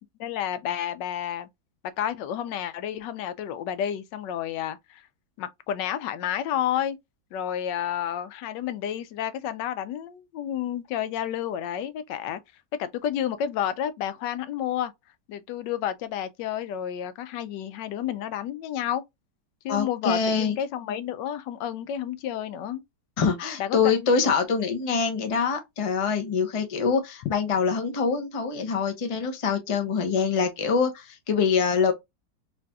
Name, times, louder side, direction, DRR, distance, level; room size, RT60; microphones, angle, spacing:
voice 1, 0.2-1.5 2.0-5.1 5.4-7.0 7.3-12.4 12.8-14.9 15.3-19.0 19.6-22.8 23.6-24.1, left 10 dB, 85° left, 1.2 m, -30 dB
voice 2, 19.7-20.6 23.2-31.9, left 5 dB, 40° left, 0.5 m, -24 dB
4.0 x 3.2 x 2.2 m
omnidirectional pair, 1.9 m